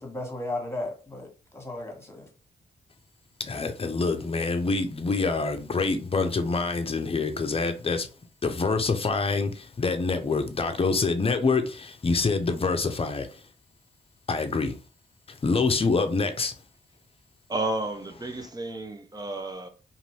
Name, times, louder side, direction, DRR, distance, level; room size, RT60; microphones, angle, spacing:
voice 1, 0.0-2.3, left 2 dB, 15° left, 1.4 m, -35 dB
voice 2, 3.4-8.1 8.4-13.4 14.3-14.8 15.3-16.5, left 4 dB, 35° left, 0.6 m, -26 dB
voice 3, 17.5-19.7, right 2 dB, 20° right, 0.6 m, -32 dB
2.6 x 2.6 x 3.1 m
cardioid pair, 60°, 18 cm